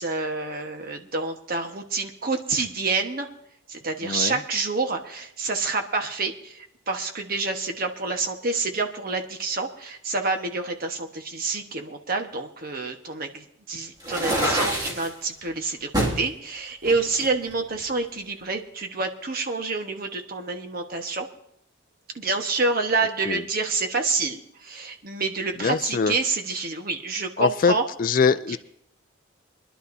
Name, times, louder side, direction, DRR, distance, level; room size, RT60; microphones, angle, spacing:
voice 1, 0.0-3.3 3.7-21.3 22.1-27.8 28.5-28.6, right 3 dB, 45° right, 5 dB, 1.3 m, -28 dB
voice 2, 4.0-4.4 23.3-23.4 25.6-26.1 27.4-28.6, left 5 dB, 45° left, 12 dB, 0.4 m, -23 dB
sound 1, 14.0-15.1 15.9-16.2 16.8-17.9, right 1 dB, 20° right, 2.2 m, -26 dB
23.5 x 11.5 x 2.7 m, 0.73 s
head